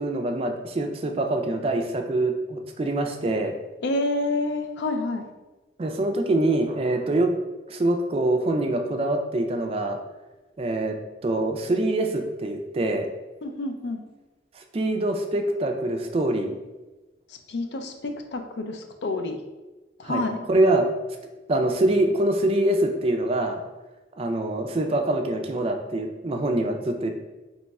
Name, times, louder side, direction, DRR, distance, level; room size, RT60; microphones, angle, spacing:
voice 1, 0.0-3.5 5.8-7.3 7.7-10.0 10.6-11.0 11.2-13.1 14.5-16.6 20.0-20.9 21.5-23.6 24.2-27.1, right 1 dB, 30° right, 4 dB, 0.3 m, -24 dB
voice 2, 3.8-5.3 13.4-14.0 17.3-19.4 20.0-20.4, left 2 dB, 70° left, 6 dB, 0.4 m, -28 dB
3.0 x 2.3 x 4.1 m, 1.1 s
head